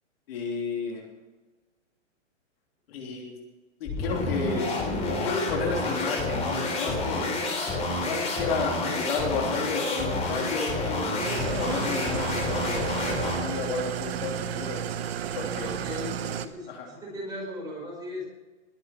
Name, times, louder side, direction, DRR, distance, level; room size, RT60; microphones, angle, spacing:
voice 1, 0.3-1.0 2.9-3.4 3.8-4.7 5.1-7.3 8.0-14.8 15.3-15.7 16.7-16.9, left 4 dB, 50° left, 0 dB, 3.3 m, -32 dB
sound 1, 3.8-13.5, left 2 dB, 15° left, 3.3 m, -29 dB
Engine starting / Idling, 11.2-16.5, right 9 dB, 50° right, 1.1 m, -32 dB
voice 2, 15.4-18.3, left 1 dB, 10° right, -3 dB, 5.1 m, -38 dB
21.0 x 7.8 x 6.0 m, 1.2 s
hypercardioid pair, 160°, 39 cm